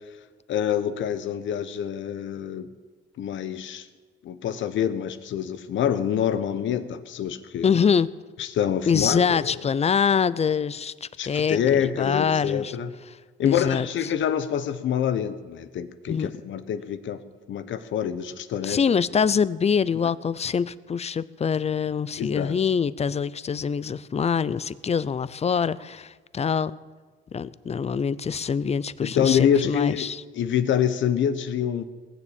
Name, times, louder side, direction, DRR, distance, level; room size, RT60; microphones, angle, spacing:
voice 1, 0.5-2.7 3.2-3.9 4.2-7.7 8.4-9.5 11.2-12.9 13.4-17.2 17.5-18.8 22.2-22.5 29.0-30.1 30.3-31.8, left 9 dB, 70° left, 12 dB, 1.0 m, -26 dB
voice 2, 7.6-8.1 8.9-12.8 13.1-13.2 13.4-14.1 16.1-16.3 18.6-26.7 27.3-30.2, left 6 dB, 30° left, 18 dB, 0.6 m, -24 dB
19.5 x 7.2 x 8.7 m, 1.4 s
cardioid pair, 90°, 20 cm